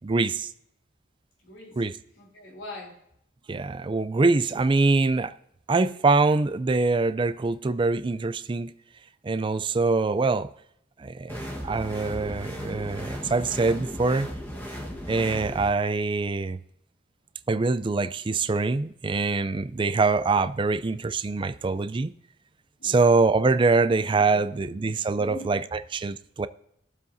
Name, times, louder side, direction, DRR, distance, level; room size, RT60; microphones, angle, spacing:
voice 1, 0.0-0.5 1.8-1.9 3.5-5.3 5.7-8.7 9.2-10.5 11.0-14.3 15.1-16.6 17.5-22.1 22.8-25.6 25.9-26.5, right 3 dB, 25° right, 0.4 m, -24 dB
voice 2, 1.4-1.8 2.2-3.0 22.8-23.1 24.2-24.9 25.2-25.6, left 2 dB, 85° left, 3.5 m, -43 dB
sound 1, 11.3-15.7, equal, 10° left, 1.2 m, -36 dB
21.0 x 7.4 x 2.7 m
head